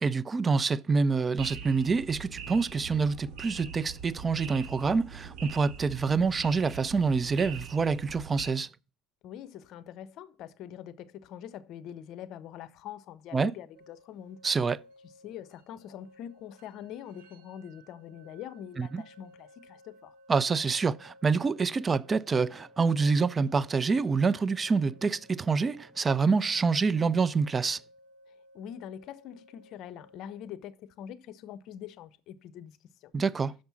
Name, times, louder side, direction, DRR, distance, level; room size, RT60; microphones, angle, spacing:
voice 1, 0.0-8.7 13.3-13.5 14.4-14.8 18.8-19.0 20.3-27.8 33.1-33.5, right 4 dB, 25° right, 0.3 m, -26 dB
sound 1, 1.4-8.5, right 6 dB, 60° right, 2.5 m, -43 dB
voice 2, 9.2-14.4 15.2-20.1 28.5-33.1, left 10 dB, 60° left, 0.7 m, -44 dB
sound 2, 13.7-30.4, equal, 90° right, 1.4 m, -58 dB
6.3 x 5.9 x 7.0 m
supercardioid pair, 110°, 0 cm